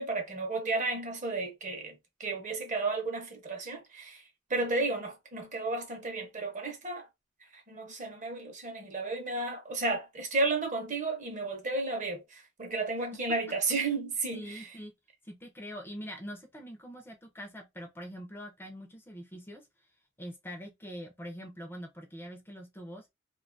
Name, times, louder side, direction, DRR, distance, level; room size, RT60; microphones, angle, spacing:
voice 1, 0.0-4.2 4.5-7.1 7.5-14.7, right 3 dB, 40° right, 0.7 m, -33 dB
voice 2, 14.3-14.9 15.3-19.7 20.2-23.0, equal, 10° left, 0.4 m, -44 dB
2.5 x 2.3 x 2.5 m
head